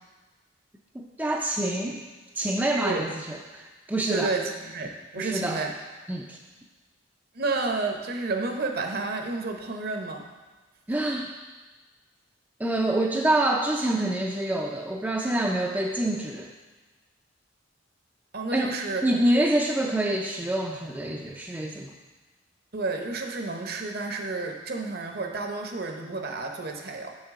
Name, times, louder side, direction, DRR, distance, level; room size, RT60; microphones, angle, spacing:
voice 1, 0.9-2.0 2.4-4.3 5.2-5.6 6.1-6.4 10.9-11.3 12.6-16.5 18.5-18.7 19.0-21.9, right 1 dB, 10° right, 0 dB, 0.4 m, -26 dB
voice 2, 4.1-5.7 7.3-10.2 18.3-19.1 22.7-27.1, right 3 dB, 50° right, 3 dB, 0.8 m, -31 dB
7.2 x 6.4 x 3.6 m, 1.3 s
head